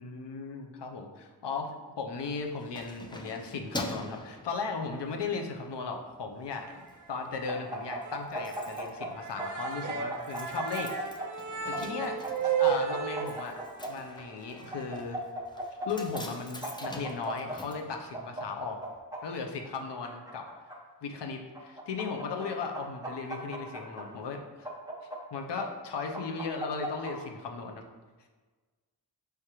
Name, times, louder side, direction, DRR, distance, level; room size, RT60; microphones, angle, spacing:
voice 1, 0.0-6.8 7.1-10.9 11.7-13.6 13.9-15.2 15.9-18.8 19.2-20.5 21.0-24.7 25.3-27.8, left 4 dB, 80° left, 3 dB, 0.6 m, -36 dB
Keys jangling, 2.1-5.2 5.7-5.9 6.3-7.0 7.2-7.3 7.6-7.7 7.9-18.7 19.0-19.1, left 1 dB, 10° left, 0.3 m, -45 dB
sound 1, 6.6-7.2 7.5-7.6 8.0-8.2 8.5-8.7 9.0-15.0, right 8 dB, 45° right, 0.6 m, -34 dB
sound 2, 7.5-9.1 9.4-11.3 11.7-13.9 14.7-15.9 16.1-16.2 16.6-17.6 18.1-19.2 19.8-20.8 21.5-22.5 22.7-24.0 24.6-25.6 26.1-27.1, right 2 dB, 10° right, 0.8 m, -37 dB
4.8 x 3.4 x 3.0 m, 1.4 s
wide cardioid pair, 65°, 41 cm